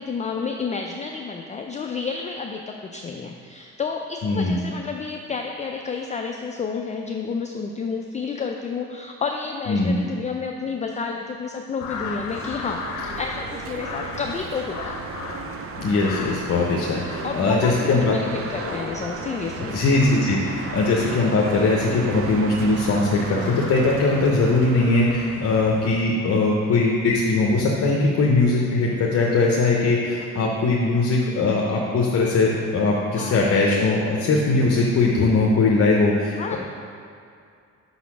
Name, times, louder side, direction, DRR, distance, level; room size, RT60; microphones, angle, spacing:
voice 1, 0.0-14.9 17.2-19.8 33.1-33.5 36.4-36.6, left 5 dB, 25° left, 3 dB, 0.3 m, -30 dB
voice 2, 4.2-4.6 9.7-10.0 15.8-18.2 19.7-36.6, left 3 dB, 55° left, -2 dB, 0.8 m, -20 dB
sound 1, 11.8-26.1, left 5 dB, 90° left, 0.6 m, -37 dB
sound 2, 12.3-24.9, right 6 dB, 50° right, 0.5 m, -35 dB
5.5 x 4.1 x 5.9 m, 2.4 s
cardioid pair, 90°, 30 cm